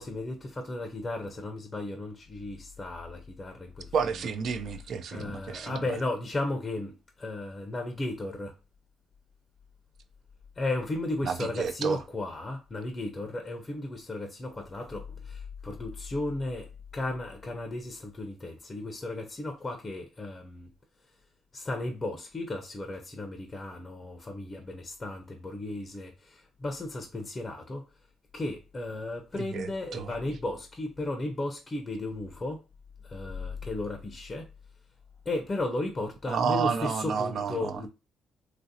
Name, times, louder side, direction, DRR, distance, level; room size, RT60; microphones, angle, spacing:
voice 1, 0.0-3.9 5.1-8.5 10.6-16.7 16.9-20.7 21.5-27.8 28.3-32.6 33.0-34.5 35.3-37.9, left 2 dB, 30° left, 0.5 m, -35 dB
voice 2, 3.9-5.9 11.2-12.0 29.4-30.1 36.3-37.8, right 6 dB, 65° right, 0.4 m, -30 dB
3.0 x 2.6 x 2.6 m
cardioid pair, 90°, 0 cm